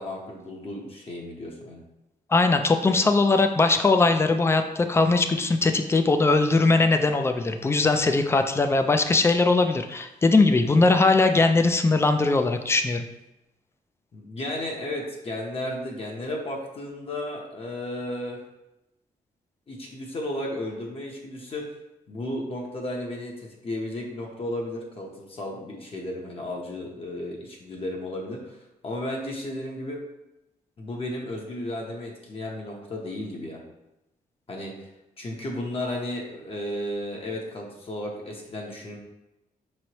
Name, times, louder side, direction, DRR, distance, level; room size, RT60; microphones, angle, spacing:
voice 1, 0.0-1.8 14.1-18.4 19.7-21.6 22.1-28.6 28.8-30.0 30.8-33.6 34.5-34.7 35.2-39.0, left 1 dB, 40° left, -1 dB, 0.8 m, -34 dB
voice 2, 2.3-13.0, left 3 dB, 15° left, 7 dB, 0.3 m, -20 dB
5.2 x 3.1 x 2.9 m, 0.92 s
wide cardioid pair, 135°, 15 cm